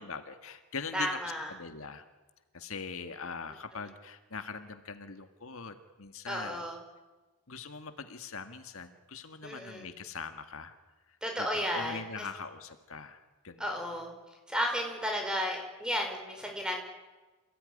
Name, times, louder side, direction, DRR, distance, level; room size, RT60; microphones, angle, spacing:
voice 1, 0.0-2.1 2.5-6.7 7.5-10.8 11.1-13.8, left 5 dB, 70° left, 8 dB, 1.7 m, -42 dB
voice 2, 0.9-1.5 6.3-6.8 9.4-9.9 11.2-12.3 13.6-14.1 14.5-16.8, equal, 5° right, 2 dB, 5.2 m, -33 dB
28.0 x 18.0 x 9.9 m, 1.2 s
head